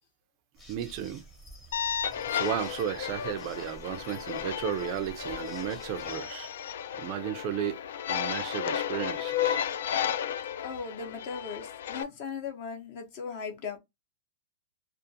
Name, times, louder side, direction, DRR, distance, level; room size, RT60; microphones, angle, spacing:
sound 1, 0.6-6.2, right 1 dB, 10° left, 0.9 m, -51 dB
voice 1, 0.7-1.2 2.3-6.5 7.0-7.8 8.1-9.6, right 10 dB, 40° right, 0.3 m, -34 dB
sound 2, 1.7-12.0, left 9 dB, 75° left, 0.3 m, -33 dB
voice 2, 10.6-13.8, left 5 dB, 45° left, 0.8 m, -38 dB
2.5 x 2.4 x 2.6 m
supercardioid pair, 155°, 0 cm